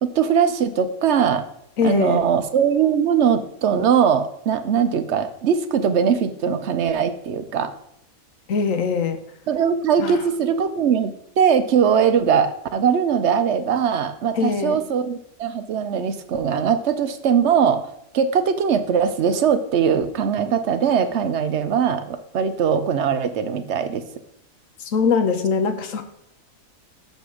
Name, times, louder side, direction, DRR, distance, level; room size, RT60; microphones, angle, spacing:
voice 1, 0.0-1.4 1.8-7.7 9.5-17.9 18.1-24.0, right 7 dB, 60° right, 10 dB, 0.9 m, -20 dB
voice 2, 1.8-2.2 8.5-9.2 10.0-10.2 14.3-14.8 24.8-26.0, left 5 dB, 65° left, 8 dB, 1.3 m, -22 dB
6.8 x 5.3 x 6.2 m, 0.75 s
omnidirectional pair, 1.5 m